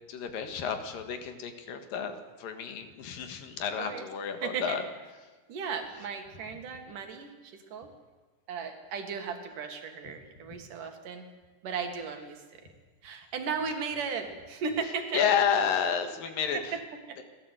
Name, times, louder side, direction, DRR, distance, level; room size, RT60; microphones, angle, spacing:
voice 1, 0.1-4.8 15.1-16.8 17.2-17.3, left 7 dB, 80° left, 7 dB, 3.5 m, -30 dB
voice 2, 4.4-4.8 5.5-7.9 8.5-11.3 11.6-12.6 13.0-15.2 16.5-16.8 17.1-17.2, right 5 dB, 70° right, 5 dB, 3.4 m, -36 dB
30.0 x 12.5 x 8.1 m, 1.3 s
omnidirectional pair, 3.9 m